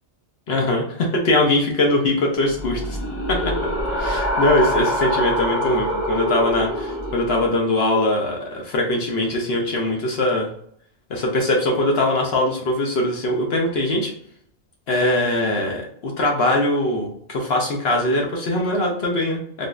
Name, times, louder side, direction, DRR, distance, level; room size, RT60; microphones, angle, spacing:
voice 1, 0.5-3.0 3.9-10.5 11.1-14.1 14.9-19.7, left 1 dB, 60° left, -1 dB, 0.9 m, -21 dB
sound 1, 2.4-7.6, equal, 40° left, 0.9 m, -25 dB
3.5 x 2.5 x 2.3 m, 0.66 s
omnidirectional pair, 1.2 m